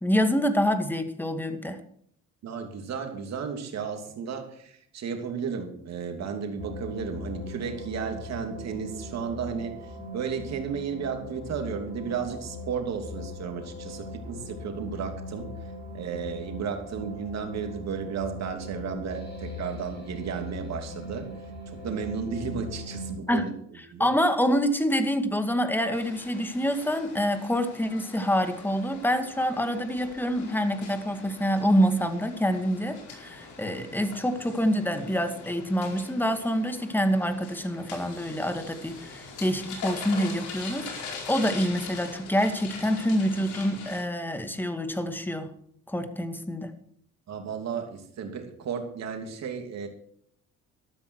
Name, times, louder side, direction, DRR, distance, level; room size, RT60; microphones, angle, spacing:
voice 1, 0.0-1.8 23.3-23.5 24.0-45.5 45.9-46.7, equal, 5° left, 8 dB, 2.0 m, -26 dB
voice 2, 2.4-9.8 10.1-15.5 15.9-21.3 21.7-23.5 23.9-24.1 47.3-49.9, right 6 dB, 65° right, 5 dB, 3.0 m, -33 dB
sound 1, 6.6-23.1, left 1 dB, 35° left, 7.7 m, -40 dB
sound 2, 25.9-44.0, left 4 dB, 80° left, 4.8 m, -42 dB
13.0 x 13.0 x 4.7 m, 0.65 s
cardioid pair, 95°, 29 cm